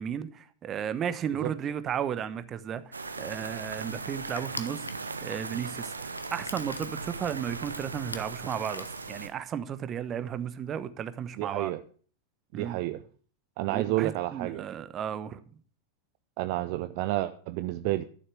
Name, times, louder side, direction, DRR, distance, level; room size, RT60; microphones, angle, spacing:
voice 1, 0.0-4.9 5.2-11.7 12.5-12.8 13.7-15.4, right 8 dB, 30° right, 1.0 m, -34 dB
Crushing, 2.8-9.6, left 3 dB, 80° left, 1.0 m, -44 dB
sound 1, 2.9-9.3, right 3 dB, 80° right, 1.1 m, -38 dB
voice 2, 11.4-11.8 12.5-13.0 13.6-14.7 16.4-18.0, right 16 dB, 45° right, 0.6 m, -30 dB
12.0 x 7.1 x 6.2 m
figure-of-eight pair, 90°, 0 cm